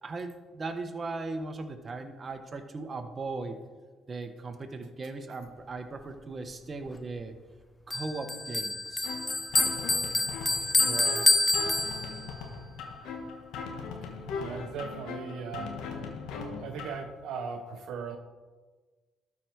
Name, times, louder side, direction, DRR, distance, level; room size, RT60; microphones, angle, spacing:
voice 1, 0.0-3.6 4.1-7.4 7.9-9.1, right 3 dB, 40° right, 7 dB, 1.0 m, -38 dB
Bell, 7.9-12.4, left 2 dB, 25° left, 0.6 m, -27 dB
sound 1, 9.0-17.0, left 4 dB, 80° left, 1.2 m, -39 dB
voice 2, 10.8-11.4 14.4-15.8 16.6-18.2, right 6 dB, 75° right, 6 dB, 0.7 m, -38 dB
12.5 x 4.8 x 4.6 m, 1.3 s
supercardioid pair, 70°, 0 cm